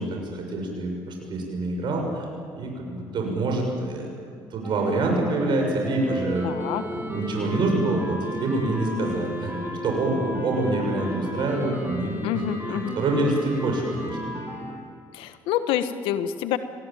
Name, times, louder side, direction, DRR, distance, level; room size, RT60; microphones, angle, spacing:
voice 1, 0.0-2.3 2.6-4.1 4.5-6.4 6.9-9.5 9.8-14.4, right 2 dB, 60° right, 1 dB, 6.6 m, -26 dB
sound 1, 4.6-14.7, right 1 dB, 25° right, 7.2 m, -33 dB
voice 2, 6.4-6.8 12.2-13.0 15.1-16.6, left 10 dB, 85° left, 11 dB, 1.2 m, -27 dB
24.5 x 19.5 x 9.1 m, 2.3 s
supercardioid pair, 80°, 9 cm